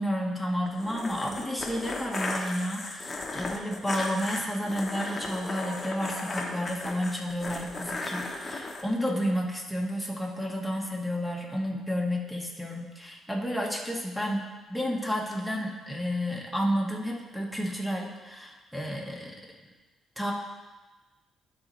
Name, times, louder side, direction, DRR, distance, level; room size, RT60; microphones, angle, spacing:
voice 1, 0.0-14.4 14.7-19.3 20.2-20.3, equal, ahead, -2 dB, 1.4 m, -31 dB
sound 1, 0.7-8.8, left 2 dB, 30° left, 0.9 m, -35 dB
12.0 x 4.0 x 3.2 m, 1.2 s
cardioid pair, 90°, 0 cm